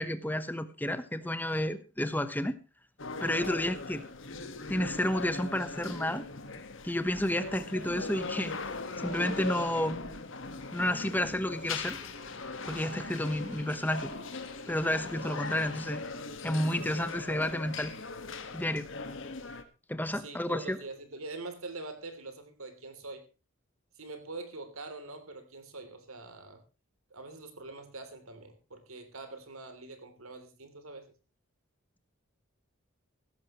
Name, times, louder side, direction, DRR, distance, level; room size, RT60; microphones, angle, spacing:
voice 1, 0.0-2.6 3.2-4.1 4.7-6.3 6.8-8.6 9.0-10.0 10.7-12.0 12.7-14.1 14.7-16.0 16.4-17.9 18.5-18.9 19.9-20.8, left 1 dB, 10° left, 12 dB, 1.0 m, -31 dB
sound 1, 3.0-19.6, left 3 dB, 60° left, 1.7 m, -40 dB
sound 2, 10.9-16.0, right 2 dB, 35° right, 2.0 m, -55 dB
voice 2, 20.1-23.2 24.0-26.6 27.1-31.1, right 3 dB, 80° right, 9 dB, 3.3 m, -44 dB
16.5 x 13.5 x 3.1 m, 0.31 s
head